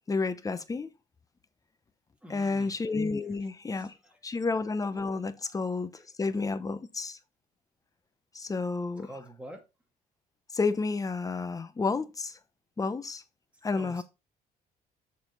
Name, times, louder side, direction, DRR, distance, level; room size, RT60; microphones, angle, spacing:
voice 1, 0.1-0.9 2.3-3.9 4.2-7.2 8.3-9.1 10.5-12.4 12.8-13.2 13.6-14.0, left 4 dB, 20° left, 0.9 m, -31 dB
voice 2, 2.2-2.8 3.7-3.8 5.4-5.5 9.0-9.6 13.7-14.0, right 1 dB, 5° right, 2.4 m, -46 dB
7.2 x 4.2 x 5.4 m
cardioid pair, 110°, 17 cm